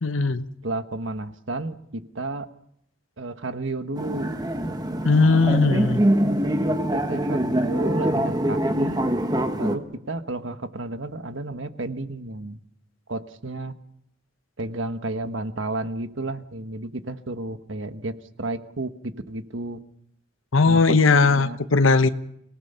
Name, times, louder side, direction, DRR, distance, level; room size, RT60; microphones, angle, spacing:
voice 1, 0.0-0.4 5.0-6.0 20.5-22.1, left 4 dB, 85° left, 0.9 m, -18 dB
voice 2, 0.6-2.5 3.2-4.4 6.9-9.0 9.6-12.6 13.1-13.7 14.6-19.8 20.7-21.6, right 2 dB, 75° right, 1.3 m, -32 dB
sound 1, 4.0-9.8, right 1 dB, 20° right, 1.3 m, -24 dB
25.5 x 18.5 x 5.6 m
head